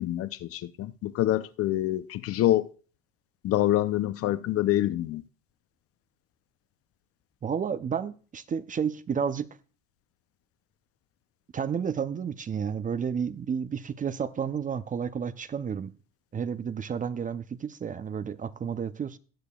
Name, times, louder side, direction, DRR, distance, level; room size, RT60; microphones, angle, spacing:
voice 1, 0.0-2.7 3.4-5.2, left 14 dB, 50° left, 0.6 m, -26 dB
voice 2, 7.4-9.5 11.5-15.9 16.3-19.2, right 7 dB, 25° right, 0.6 m, -31 dB
19.0 x 6.6 x 2.3 m
supercardioid pair, 80°, 29 cm